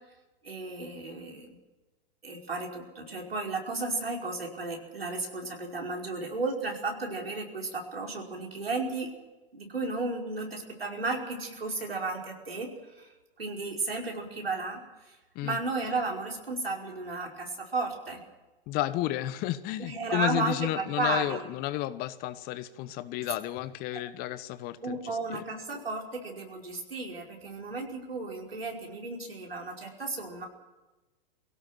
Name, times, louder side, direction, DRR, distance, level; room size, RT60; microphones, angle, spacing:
voice 1, 0.4-1.6 2.2-9.1 9.5-13.1 13.4-14.8 15.1-15.2 15.4-18.2 19.8-21.4 24.8-30.5, right 3 dB, 85° right, 0 dB, 5.4 m, -34 dB
voice 2, 18.7-25.4, left 15 dB, 30° left, 14 dB, 1.2 m, -32 dB
23.5 x 17.0 x 7.8 m, 1.1 s
figure-of-eight pair, 110°, 29 cm